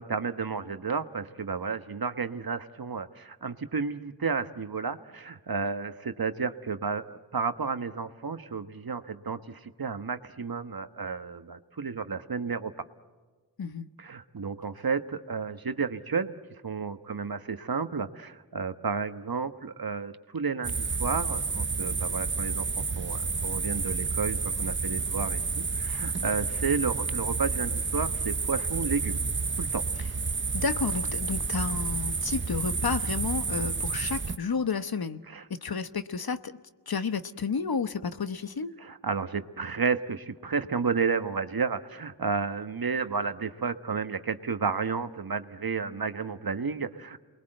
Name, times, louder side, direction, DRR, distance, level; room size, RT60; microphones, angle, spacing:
voice 1, 0.0-12.7 14.0-16.4 16.6-29.2 29.6-29.8 35.3-35.4 38.8-47.2, right 5 dB, 55° right, 10 dB, 1.3 m, -32 dB
sound 1, 20.6-34.4, right 4 dB, 25° right, 0.8 m, -30 dB
voice 2, 30.5-35.2 35.5-36.6 36.9-38.7, left 5 dB, 60° left, 11 dB, 1.1 m, -31 dB
28.0 x 21.5 x 7.8 m, 1.3 s
cardioid pair, 40°, 42 cm